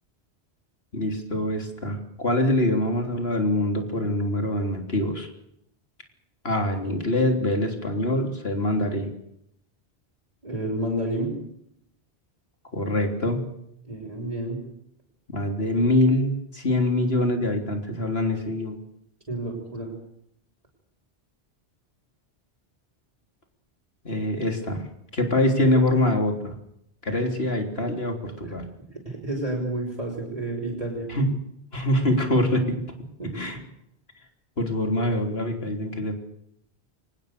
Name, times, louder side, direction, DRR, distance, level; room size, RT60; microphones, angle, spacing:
voice 1, 0.9-5.3 6.4-9.1 12.7-13.4 15.3-18.8 24.0-24.9 25.1-26.6 27.0-28.6 31.1-31.3 31.7-32.8 33.3-33.6 34.6-36.1, left 1 dB, 65° left, 4 dB, 3.8 m, -24 dB
voice 2, 10.4-11.4 13.9-14.7 19.3-19.9 29.1-31.1 33.2-33.4, right 1 dB, 35° right, -1 dB, 5.7 m, -30 dB
24.0 x 19.5 x 6.8 m, 0.74 s
omnidirectional pair, 1.1 m